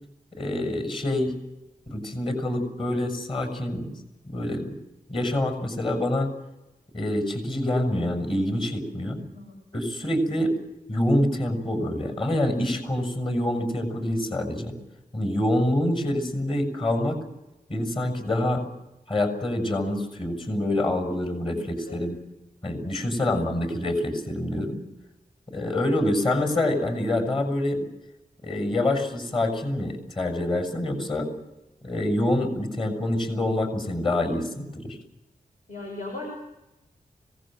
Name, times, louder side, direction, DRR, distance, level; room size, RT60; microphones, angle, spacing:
voice 1, 0.3-1.3 1.9-3.9 4.2-4.7 5.1-6.3 6.9-9.2 9.7-10.5 10.9-14.7 15.1-17.2 17.7-18.6 19.1-22.2 22.6-24.8 25.5-27.8 28.4-31.3 31.8-35.0, left 1 dB, 35° left, 7 dB, 6.6 m, -26 dB
voice 2, 21.5-22.0 23.1-23.6 35.7-36.3, left 2 dB, 60° left, 0 dB, 6.6 m, -39 dB
26.0 x 19.0 x 7.7 m, 0.95 s
wide cardioid pair, 125°, 15 cm